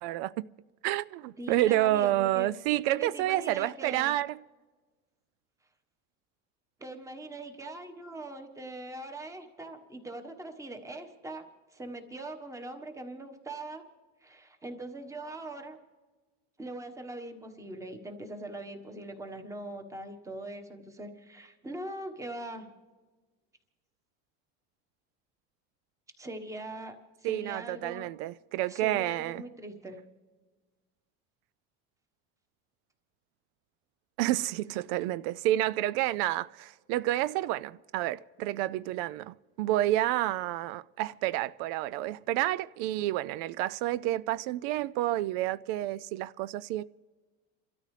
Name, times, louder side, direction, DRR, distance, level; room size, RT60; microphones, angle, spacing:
voice 1, 0.0-0.5 0.8-4.4 27.2-29.4 34.2-46.8, right 15 dB, 75° right, 0.4 m, -29 dB
voice 2, 1.4-2.5 2.9-4.1 6.8-13.8 14.2-15.8 16.6-22.7 26.2-28.1 28.7-30.0, right 1 dB, 10° right, 1.3 m, -42 dB
29.5 x 13.0 x 3.3 m
cardioid pair, 165°, 31 cm